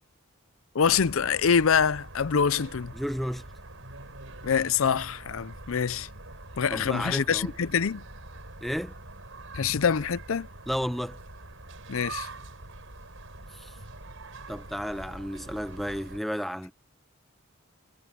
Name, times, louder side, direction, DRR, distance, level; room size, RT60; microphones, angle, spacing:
voice 1, 0.7-2.9 4.4-6.1 6.6-8.0 9.5-10.5 11.9-12.3, left 6 dB, 65° left, 0.5 m, -25 dB
sound 1, 0.8-16.2, right 2 dB, 60° right, 6.4 m, -44 dB
voice 2, 2.9-3.4 6.7-7.5 8.6-8.9 10.7-11.2 13.5-13.7 14.5-16.7, equal, ahead, 0.8 m, -32 dB
head